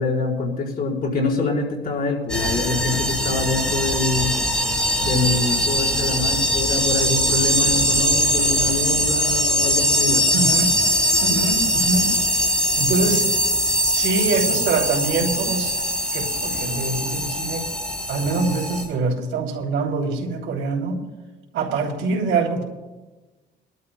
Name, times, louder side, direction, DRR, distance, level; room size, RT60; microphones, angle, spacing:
voice 1, 0.0-4.3 5.0-10.2, left 3 dB, 45° left, -2 dB, 4.8 m, -25 dB
sound 1, 2.3-18.8, equal, 5° left, 4.9 m, -21 dB
voice 2, 10.3-10.8 11.2-12.4 12.8-13.3 13.8-15.8 16.1-17.6 18.1-21.0 21.5-22.6, right 4 dB, 80° right, 0 dB, 3.1 m, -24 dB
23.0 x 12.5 x 2.3 m, 1.2 s
cardioid pair, 90°, 20 cm